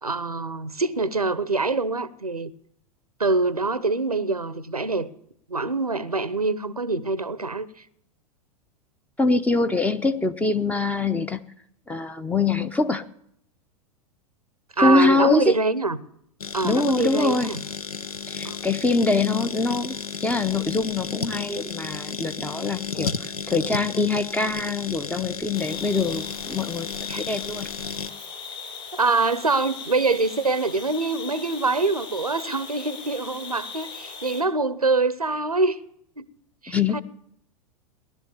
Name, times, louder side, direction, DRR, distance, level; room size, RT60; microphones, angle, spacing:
voice 1, 0.0-2.5 3.2-5.1 5.5-7.7 14.8-16.0 16.5-17.6 18.4-18.6 27.1-27.2 28.9-35.8 36.2-36.3 36.6-37.0, right 3 dB, 90° right, 0.8 m, -24 dB
voice 2, 9.2-11.4 11.9-13.0 14.8-15.5 16.6-17.5 18.3-19.9 20.2-26.9 27.2-27.7 36.7-37.0, left 3 dB, 5° left, 0.8 m, -24 dB
sound 1, 16.4-28.1, left 6 dB, 75° left, 0.8 m, -33 dB
sound 2, 25.5-34.4, left 5 dB, 30° left, 6.4 m, -39 dB
17.5 x 11.5 x 7.0 m
figure-of-eight pair, 90°, 19 cm